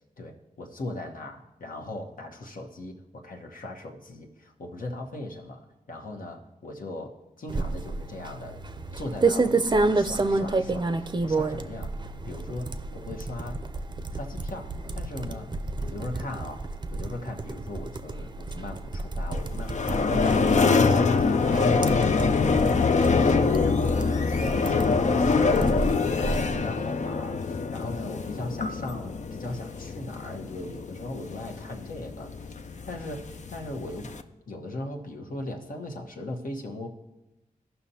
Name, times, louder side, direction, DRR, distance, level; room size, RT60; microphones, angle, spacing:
voice 1, 0.2-5.6 5.9-8.6 8.9-11.9 12.2-13.6 14.1-15.5 15.8-21.7 22.9-32.3 32.8-34.2 34.5-36.9, left 2 dB, 70° left, 1 dB, 1.1 m, -38 dB
sound 1, 7.5-26.6, right 3 dB, 30° right, 0.5 m, -30 dB
sound 2, 19.3-34.2, left 4 dB, 55° left, 0.5 m, -25 dB
15.0 x 5.7 x 2.8 m, 0.97 s
cardioid pair, 55°, 15 cm